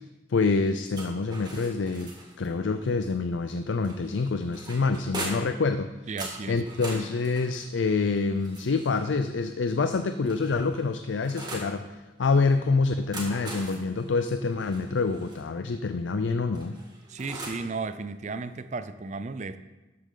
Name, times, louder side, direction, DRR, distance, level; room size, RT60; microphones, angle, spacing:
voice 1, 0.3-2.1 2.4-5.9 6.5-16.8, left 4 dB, 85° left, 9 dB, 0.5 m, -26 dB
sound 1, 0.9-2.5 3.8-5.6 6.2-9.1 9.9-11.7 12.9-15.4 16.5-17.7, right 2 dB, 20° right, 1.9 m, -41 dB
voice 2, 6.1-6.6 17.1-19.6, right 4 dB, 40° right, 12 dB, 0.5 m, -34 dB
12.5 x 8.4 x 3.9 m, 1.1 s
head